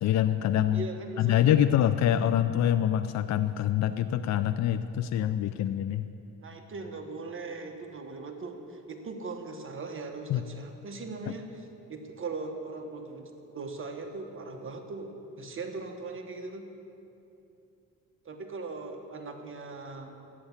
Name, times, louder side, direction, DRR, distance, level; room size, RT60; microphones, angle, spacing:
voice 1, 0.0-0.8 1.2-6.0 10.3-10.4 11.3-11.4, left 11 dB, 65° left, 10 dB, 0.5 m, -25 dB
voice 2, 0.7-1.5 6.4-16.7 18.2-20.1, right 3 dB, 45° right, 4 dB, 1.3 m, -39 dB
11.5 x 9.3 x 7.2 m, 2.8 s
cardioid pair, 90°, 30 cm